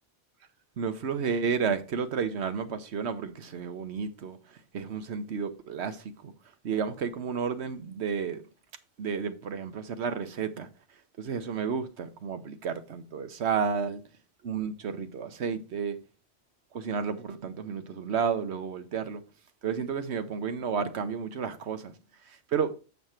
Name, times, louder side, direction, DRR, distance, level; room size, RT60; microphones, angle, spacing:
voice 1, 0.8-6.3 6.6-8.4 9.0-10.7 11.2-14.0 14.4-16.0 16.7-19.2 19.6-21.9 22.2-22.7, right 6 dB, 70° right, 1.1 m, -32 dB
7.7 x 5.7 x 4.3 m
omnidirectional pair, 1.2 m